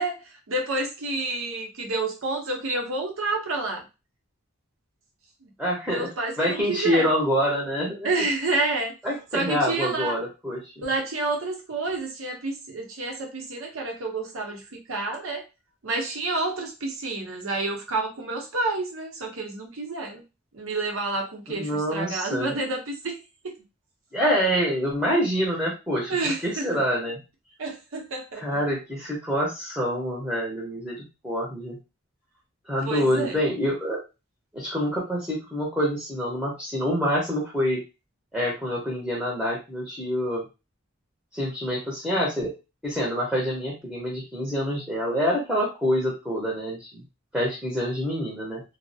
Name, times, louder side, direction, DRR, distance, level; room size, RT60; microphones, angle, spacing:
voice 1, 0.0-3.9 5.4-5.5 5.9-7.1 8.0-8.9 9.3-10.2 10.8-15.4 15.8-20.2 20.5-23.6 26.1-26.8 27.6-28.6 32.8-33.4, right 2 dB, 85° right, 2 dB, 0.7 m, -29 dB
voice 2, 5.6-6.1 6.4-8.1 9.0-10.8 21.5-22.5 24.1-26.1 26.4-27.2 28.3-31.8 32.7-34.0 34.5-37.8 38.3-40.4 41.3-42.5 42.8-47.0 47.3-48.6, equal, 5° right, -5 dB, 0.6 m, -26 dB
2.3 x 2.0 x 2.6 m, 0.28 s
head